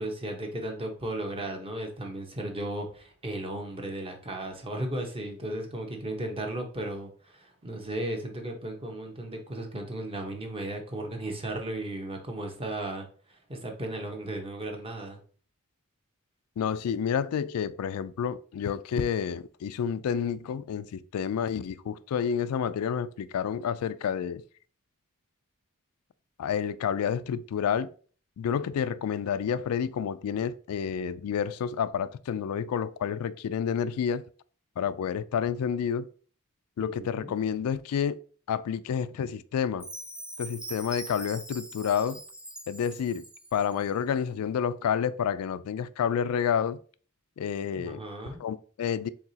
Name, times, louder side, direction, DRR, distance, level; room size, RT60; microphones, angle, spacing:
voice 1, 0.0-15.2 36.8-37.3 47.7-48.4, right 1 dB, 25° right, 0.9 m, -35 dB
voice 2, 16.6-24.4 26.4-27.9 28.4-34.2 34.8-36.1 36.8-38.2 38.5-39.9 40.4-42.2 42.7-43.2 43.5-46.8 47.4-48.0 48.4-49.1, left 7 dB, 85° left, 0.3 m, -29 dB
Chime, 39.8-43.9, right 1 dB, 5° right, 0.5 m, -42 dB
4.7 x 3.8 x 2.7 m
head